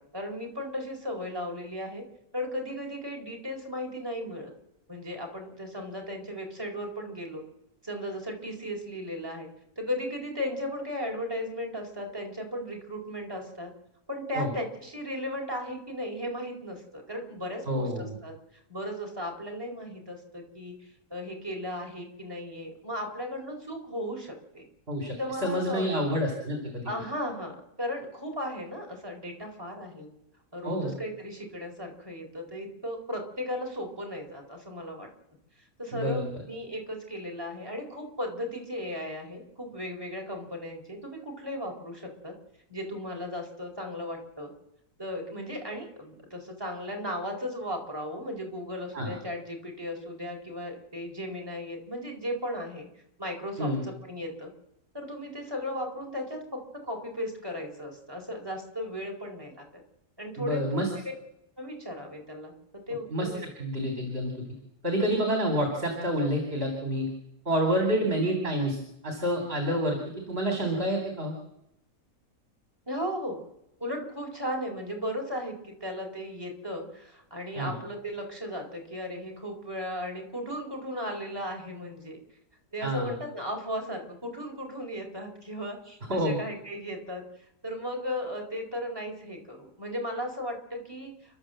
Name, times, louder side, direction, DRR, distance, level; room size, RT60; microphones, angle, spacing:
voice 1, 0.0-2.0 2.3-4.5 4.9-7.4 7.8-9.5 9.8-13.7 14.1-18.3 18.7-24.6 25.2-26.2 26.8-30.1 30.5-35.1 35.8-42.3 42.7-44.5 45.0-52.9 53.2-54.5 54.9-59.7 60.2-60.8 61.6-62.5 62.9-63.4 67.9-68.0 72.9-73.4 73.8-82.2 82.7-87.2 87.6-91.1, equal, 15° right, 0 dB, 4.3 m, -36 dB
voice 2, 17.7-18.2 24.9-25.2 25.4-26.9 30.6-30.9 35.9-36.4 48.9-49.1 53.6-53.8 60.4-60.9 63.1-64.3 64.8-67.1 67.5-71.3 77.6-77.7 82.8-83.1 86.1-86.4, equal, 40° right, 2 dB, 3.6 m, -28 dB
30.0 x 12.0 x 7.7 m, 0.85 s
omnidirectional pair, 1.5 m